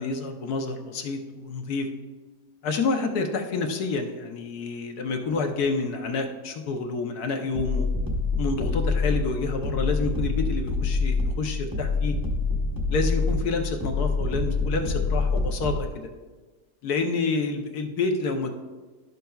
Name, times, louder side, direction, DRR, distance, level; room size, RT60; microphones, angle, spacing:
voice 1, 0.0-1.9 2.6-7.9 8.4-12.2 12.9-16.1 16.8-18.5, left 4 dB, 70° left, 3 dB, 1.2 m, -28 dB
sound 1, 7.5-15.9, left 3 dB, 20° right, 0.7 m, -26 dB
11.5 x 6.6 x 2.3 m, 1.3 s
omnidirectional pair, 1.8 m